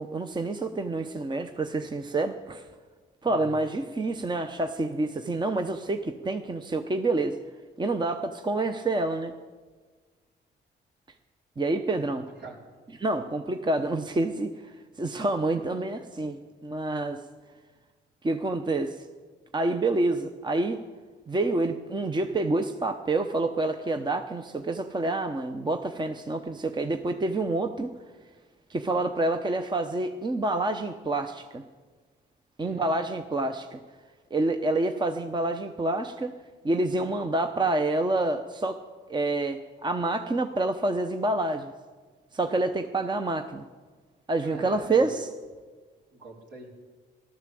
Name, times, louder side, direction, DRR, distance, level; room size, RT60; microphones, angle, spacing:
voice 1, 0.0-2.6 3.2-7.4 7.8-9.3 11.6-12.3 13.0-14.7 15.0-17.2 18.2-19.0 19.5-20.8 21.3-27.9 28.7-31.6 32.6-33.8 34.3-36.4 36.6-38.8 39.1-41.7 42.3-43.7 44.3-45.3, right 2 dB, 20° right, 7 dB, 0.8 m, -28 dB
voice 2, 3.2-3.6 12.4-12.6 32.6-32.9 44.4-45.2 46.1-46.7, right 3 dB, 60° right, 0 dB, 4.1 m, -44 dB
15.0 x 12.5 x 7.7 m, 1.4 s
cardioid pair, 90°, 20 cm